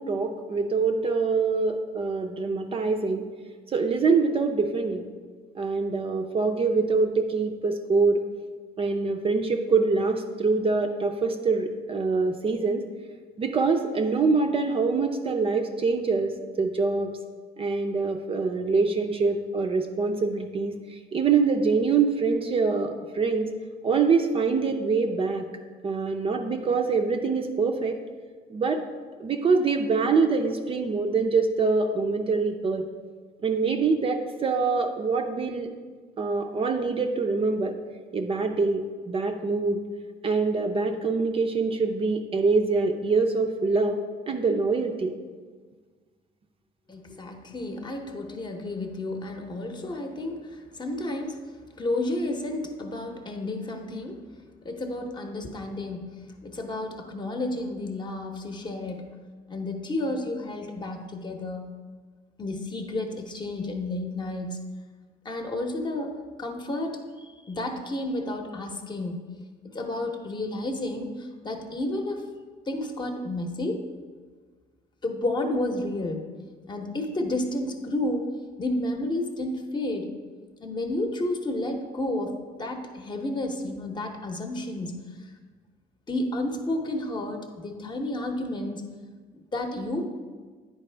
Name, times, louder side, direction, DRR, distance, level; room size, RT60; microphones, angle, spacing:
voice 1, 0.0-3.2 3.7-5.1 5.6-8.2 8.8-12.8 13.4-17.1 17.6-20.7 21.1-23.5 23.8-25.5 25.8-28.0 28.5-28.8 29.2-32.8 33.4-35.7 36.2-37.7 38.1-39.8 40.2-44.0 44.3-45.1, right 4 dB, 35° right, 4 dB, 0.5 m, -24 dB
voice 2, 46.9-51.4 51.8-54.2 54.6-56.1 56.4-59.1 59.5-61.7 62.4-64.6 65.2-66.1 66.4-69.2 69.7-71.1 71.4-72.2 72.7-73.8 75.0-76.2 76.7-78.3 78.6-80.1 80.6-85.0 86.1-88.8 89.5-90.0, left 1 dB, 25° left, 4 dB, 0.8 m, -31 dB
9.5 x 4.5 x 3.3 m, 1.5 s
cardioid pair, 110°, 17 cm